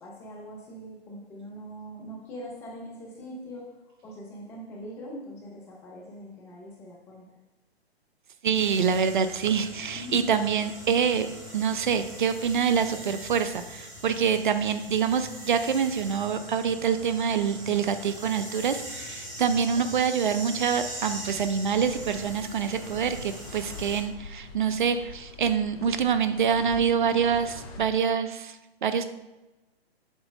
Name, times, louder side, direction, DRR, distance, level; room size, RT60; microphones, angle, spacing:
voice 1, 0.0-3.7 4.0-7.3 9.9-10.2, equal, 10° left, -2 dB, 0.5 m, -42 dB
voice 2, 8.4-11.3 11.5-28.6 28.8-29.1, right 7 dB, 50° right, 10 dB, 0.5 m, -26 dB
sound 1, 8.5-24.0, equal, 10° right, 1.4 m, -41 dB
sound 2, 21.7-28.0, left 3 dB, 35° left, 1.0 m, -44 dB
7.3 x 3.0 x 5.0 m, 1.1 s
figure-of-eight pair, 135°, 32 cm